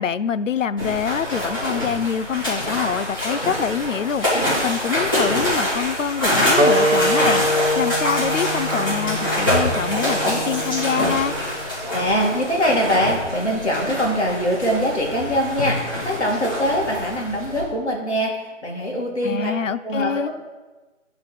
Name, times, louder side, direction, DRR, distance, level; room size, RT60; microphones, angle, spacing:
voice 1, 0.0-11.3 19.2-20.3, left 7 dB, 80° left, 15 dB, 0.5 m, -25 dB
sound 1, 0.8-17.6, equal, 15° left, 2.7 m, -25 dB
sound 2, 6.6-11.7, equal, 90° right, 1.2 m, -24 dB
voice 2, 11.9-19.5 19.8-20.3, equal, 60° left, -2 dB, 2.3 m, -23 dB
10.0 x 3.9 x 5.0 m, 1.2 s
figure-of-eight pair, 180°, 38 cm